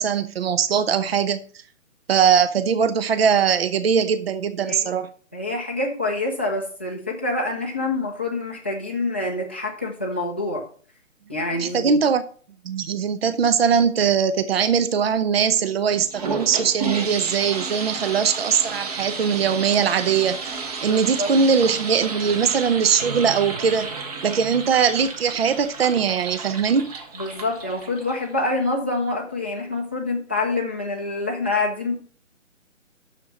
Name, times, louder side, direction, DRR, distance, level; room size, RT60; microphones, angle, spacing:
voice 1, 0.0-1.4 2.1-5.1 11.6-12.2 12.6-20.4 20.8-23.9 24.2-26.9, right 7 dB, 50° right, 0.7 m, -21 dB
voice 2, 4.6-4.9 5.3-10.6 11.3-12.0 20.9-21.3 27.2-32.0, left 2 dB, 10° left, 0.5 m, -26 dB
sound 1, 15.9-28.4, right 4 dB, 30° right, 1.1 m, -32 dB
6.8 x 6.7 x 5.4 m
figure-of-eight pair, 140°, 39 cm